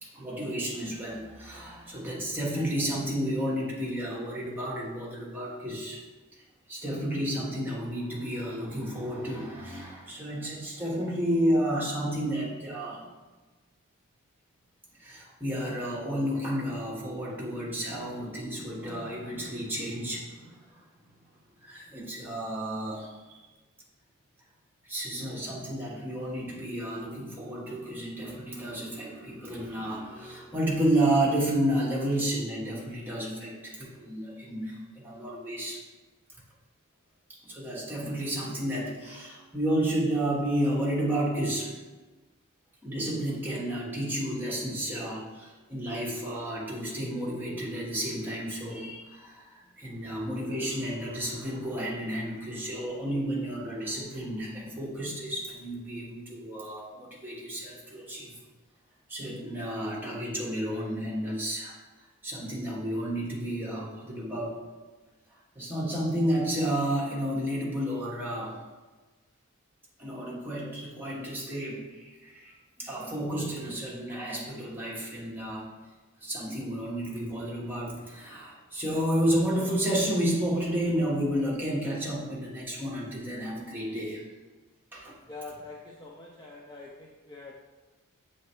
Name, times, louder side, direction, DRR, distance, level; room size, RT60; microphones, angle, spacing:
voice 1, 0.0-6.0 6.3-13.1 15.0-20.8 21.6-23.4 24.8-35.8 37.4-41.8 42.8-58.4 59.1-61.7 62.2-64.6 65.3-68.6 70.0-75.7 76.2-84.3 84.9-85.2, right 1 dB, 10° right, -5 dB, 1.1 m, -31 dB
voice 2, 85.3-87.5, left 3 dB, 20° left, -2 dB, 0.4 m, -44 dB
6.8 x 3.3 x 4.4 m, 1.3 s
head